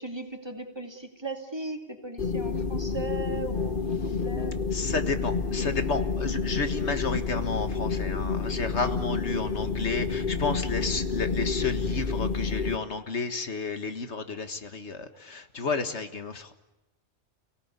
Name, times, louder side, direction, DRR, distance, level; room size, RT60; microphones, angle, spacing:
voice 1, 0.0-4.7 9.3-9.6, right 2 dB, 20° right, 3 dB, 2.7 m, -38 dB
sound 1, 2.2-12.8, left 4 dB, 45° left, 1.4 m, -29 dB
voice 2, 4.7-16.5, left 4 dB, 65° left, 8 dB, 1.9 m, -31 dB
29.5 x 18.0 x 9.7 m, 1.0 s
omnidirectional pair, 1.2 m